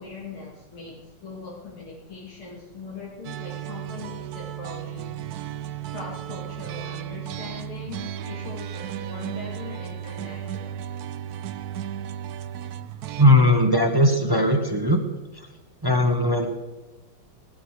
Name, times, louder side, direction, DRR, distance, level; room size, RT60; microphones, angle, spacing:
voice 1, 0.0-5.4 5.9-10.8, left 4 dB, 75° left, -5 dB, 3.2 m, -40 dB
sound 1, 3.2-13.3, right 11 dB, 90° right, 0.8 m, -34 dB
voice 2, 13.2-15.0 15.3-15.5 15.8-16.5, left 1 dB, 20° right, 5 dB, 0.6 m, -19 dB
19.0 x 12.5 x 4.9 m, 1.1 s
omnidirectional pair, 2.4 m